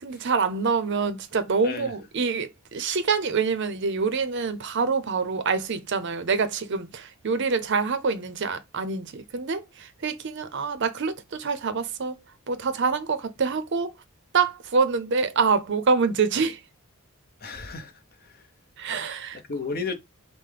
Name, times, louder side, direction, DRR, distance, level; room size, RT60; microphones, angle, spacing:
voice 1, 0.0-12.1 12.5-13.9 14.3-16.6 18.8-19.4, right 5 dB, 55° right, 0.6 m, -26 dB
voice 2, 17.4-18.5 18.8-19.0 19.3-19.9, left 4 dB, 45° left, 0.8 m, -34 dB
5.5 x 2.1 x 3.3 m
head